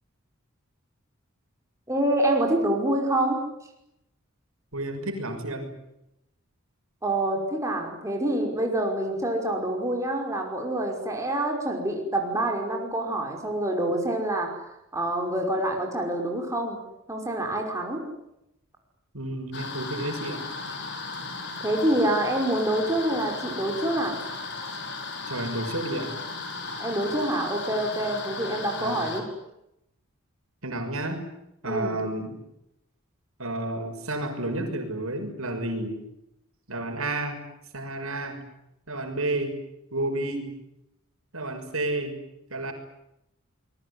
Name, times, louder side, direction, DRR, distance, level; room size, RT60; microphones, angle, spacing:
voice 1, 1.9-3.4 7.0-14.6 14.9-16.8 17.1-18.0 21.6-24.2 26.8-29.3 31.6-32.0, right 1 dB, 15° right, 1 dB, 5.5 m, -26 dB
voice 2, 4.7-5.7 19.1-20.4 25.3-26.1 28.8-29.1 30.6-31.2 31.6-32.3 33.4-36.0 36.7-37.4 37.7-38.4 38.9-39.5 39.9-40.5 41.3-42.2 42.5-42.7, right 1 dB, 75° right, 5 dB, 6.4 m, -31 dB
sound 1, 19.5-29.2, left 3 dB, 55° left, 5.7 m, -36 dB
27.5 x 21.0 x 10.0 m, 0.85 s
head